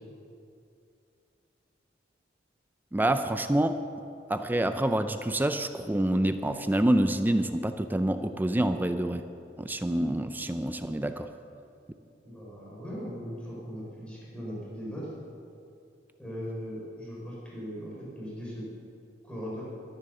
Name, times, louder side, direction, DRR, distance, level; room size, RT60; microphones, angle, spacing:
voice 1, 2.9-3.8 4.3-9.2 9.6-11.3, right 1 dB, 10° right, 9 dB, 0.4 m, -27 dB
voice 2, 12.2-15.1 16.2-18.6 19.2-19.6, equal, 5° left, -6 dB, 4.2 m, -39 dB
13.0 x 10.5 x 6.7 m, 2.5 s
head